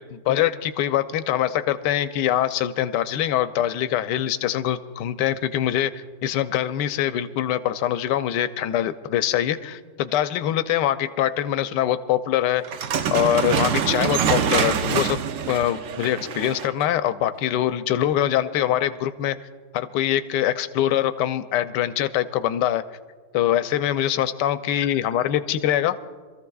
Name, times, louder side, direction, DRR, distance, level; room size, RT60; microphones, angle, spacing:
voice 1, 0.3-12.6 13.1-15.2 15.5-19.4 19.7-22.8 23.3-26.0, left 11 dB, 75° left, 11 dB, 1.2 m, -23 dB
sound 1, 12.6-16.8, right 7 dB, 70° right, 0.7 m, -25 dB
27.0 x 14.0 x 2.3 m, 1.5 s
omnidirectional pair, 2.0 m